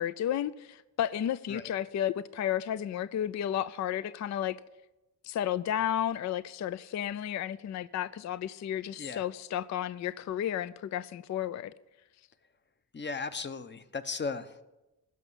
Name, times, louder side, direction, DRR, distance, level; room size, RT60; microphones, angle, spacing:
voice 1, 0.0-4.6 5.2-11.7, left 10 dB, 45° left, 0.4 m, -32 dB
voice 2, 12.9-14.6, left 4 dB, 25° left, 0.9 m, -36 dB
16.0 x 6.2 x 8.2 m
cardioid pair, 95°, 41 cm